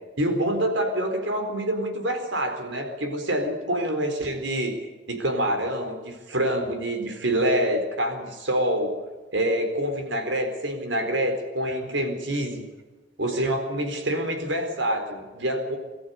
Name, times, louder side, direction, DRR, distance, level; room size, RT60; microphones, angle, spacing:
voice 1, 0.2-4.8 5.1-9.0 9.3-12.6 13.2-15.8, right 1 dB, 80° right, 5 dB, 4.2 m, -26 dB
23.0 x 14.0 x 8.3 m, 1.2 s
head